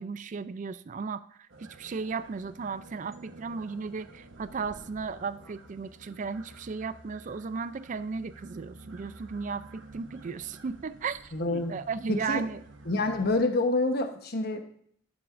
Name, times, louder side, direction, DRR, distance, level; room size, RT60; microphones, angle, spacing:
voice 1, 0.0-12.6, right 5 dB, 40° right, 14 dB, 0.4 m, -35 dB
sound 1, 1.5-13.3, right 2 dB, 75° right, 1.0 m, -50 dB
voice 2, 11.3-11.7 12.1-12.4 12.8-14.6, left 2 dB, 55° left, 6 dB, 1.0 m, -27 dB
11.0 x 7.2 x 2.5 m, 0.64 s
head